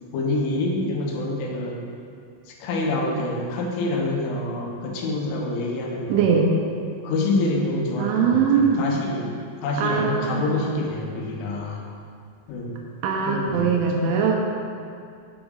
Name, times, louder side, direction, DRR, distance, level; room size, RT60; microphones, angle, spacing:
voice 1, 0.1-1.8 2.5-6.4 7.0-11.8 12.5-12.8 13.3-14.1, left 2 dB, 80° left, -1 dB, 3.6 m, -27 dB
voice 2, 6.1-6.5 8.0-8.9 9.8-10.4 13.0-14.4, right 6 dB, 80° right, 1 dB, 3.0 m, -21 dB
10.5 x 7.1 x 3.9 m, 2.4 s
omnidirectional pair, 5.7 m